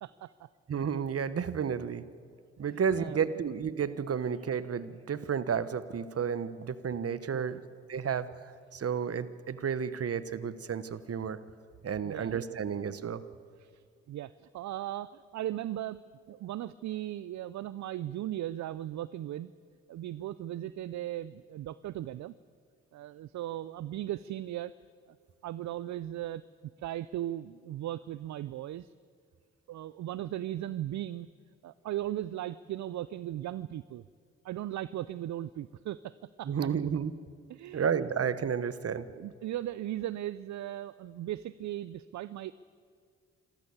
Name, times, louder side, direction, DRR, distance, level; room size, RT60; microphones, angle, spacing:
voice 1, 0.0-0.5 2.7-3.4 7.3-7.6 12.0-12.6 13.6-19.5 19.9-22.3 22.9-24.7 25.4-26.4 26.8-28.9 29.7-31.3 31.6-34.0 34.4-36.5 37.5-37.8 39.1-42.5, right 13 dB, 65° right, 17 dB, 0.5 m, -37 dB
voice 2, 0.7-2.1 2.6-7.6 7.9-11.4 11.8-13.2 36.4-37.1 37.7-39.1, right 7 dB, 50° right, 15 dB, 1.2 m, -32 dB
26.0 x 14.0 x 8.2 m, 2.1 s
supercardioid pair, 45°, 30 cm